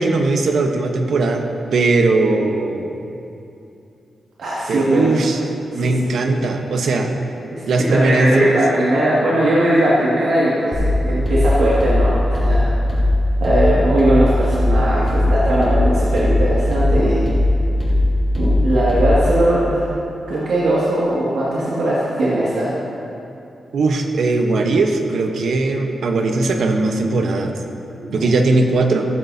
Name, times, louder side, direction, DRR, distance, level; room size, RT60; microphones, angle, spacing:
voice 1, 0.0-2.9 4.7-5.4 5.7-7.1 7.7-8.5 23.7-27.6 28.1-29.0, right 3 dB, 70° right, 4 dB, 1.0 m, -19 dB
voice 2, 4.4-5.2 5.7-5.9 6.2-6.3 7.5-12.7 13.4-17.3 18.4-19.9 20.3-22.7 28.0-28.4, right 1 dB, 85° right, -8 dB, 2.1 m, -19 dB
sound 1, 10.7-19.4, left 1 dB, 10° left, 3.3 m, -18 dB
15.5 x 14.5 x 2.8 m, 2.7 s
wide cardioid pair, 175°, 0 cm